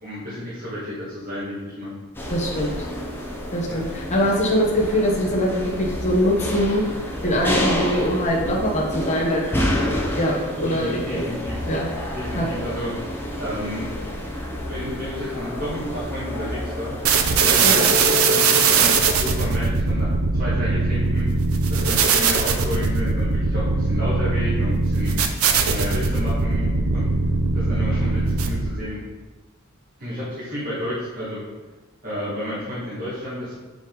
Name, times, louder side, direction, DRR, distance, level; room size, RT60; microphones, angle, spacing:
voice 1, 0.0-1.9 3.7-3.8 10.6-11.7 12.1-12.9 13.4-13.9 14.7-17.0 17.4-18.9 19.2-25.2 25.6-27.1 27.5-29.0 30.0-31.4 32.0-33.5, left 1 dB, 40° right, -9 dB, 1.9 m, -31 dB
sound 1, 2.1-18.2, left 1 dB, 10° left, 0.8 m, -29 dB
voice 2, 2.3-2.7 3.5-6.8 7.2-9.4 10.2-11.2 11.7-11.9 12.3-12.5 17.6-17.7, equal, 35° left, -3 dB, 1.1 m, -22 dB
sound 2, 17.0-28.8, right 4 dB, 80° right, 0.6 m, -20 dB
6.8 x 5.1 x 3.9 m, 1.3 s
head